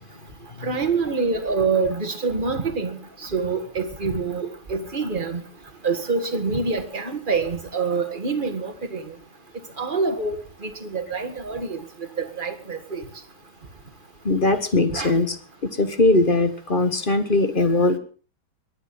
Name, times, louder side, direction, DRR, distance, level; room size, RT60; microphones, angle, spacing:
voice 1, 0.6-5.4 5.8-9.1 9.8-10.4 10.6-11.8 12.2-13.1 14.9-15.1, right 4 dB, 25° right, 6 dB, 1.9 m, -26 dB
voice 2, 14.2-15.3 15.6-18.0, left 2 dB, 30° left, 9 dB, 1.3 m, -20 dB
22.0 x 9.6 x 5.6 m, 0.40 s
omnidirectional pair, 2.2 m